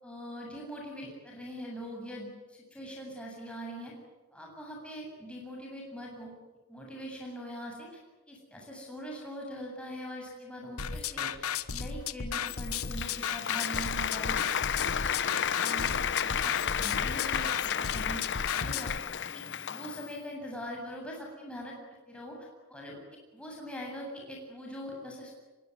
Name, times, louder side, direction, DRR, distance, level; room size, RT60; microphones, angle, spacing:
voice 1, 0.0-3.9 4.3-6.3 6.7-8.0 8.3-15.0 15.6-15.9 16.2-18.3 18.5-18.9 19.3-19.4 19.7-21.8 22.1-23.0 23.3-25.3, equal, 5° left, -2 dB, 7.9 m, -42 dB
sound 1, 10.8-19.0, left 7 dB, 75° left, 1.3 m, -35 dB
Applause, 12.5-20.1, left 8 dB, 55° left, 1.0 m, -32 dB
25.5 x 23.5 x 9.7 m, 1.2 s
head